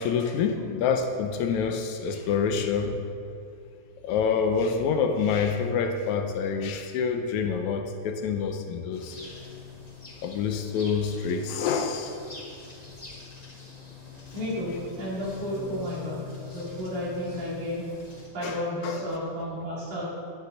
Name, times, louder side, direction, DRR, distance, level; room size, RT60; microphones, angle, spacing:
voice 1, 0.0-2.9 4.0-9.2 10.2-12.2 18.4-19.2, left 6 dB, 80° left, 6 dB, 1.9 m, -27 dB
sound 1, 8.9-18.3, left 5 dB, 20° left, 1.0 m, -44 dB
voice 2, 14.3-16.3 16.5-17.9 18.3-20.0, left 1 dB, 75° right, -7 dB, 4.2 m, -32 dB
12.0 x 8.3 x 4.0 m, 2.4 s
omnidirectional pair, 3.5 m